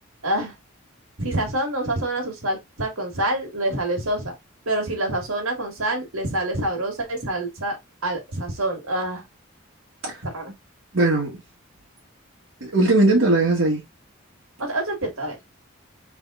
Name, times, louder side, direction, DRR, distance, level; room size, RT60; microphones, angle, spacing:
voice 1, 0.2-0.5 1.2-4.3 4.7-7.8 8.0-9.2 10.2-10.5 14.6-15.4, right 1 dB, 85° right, 2.0 m, -26 dB
voice 2, 10.9-11.4 12.6-13.8, right 2 dB, 70° right, 1.6 m, -19 dB
3.7 x 3.5 x 3.6 m
head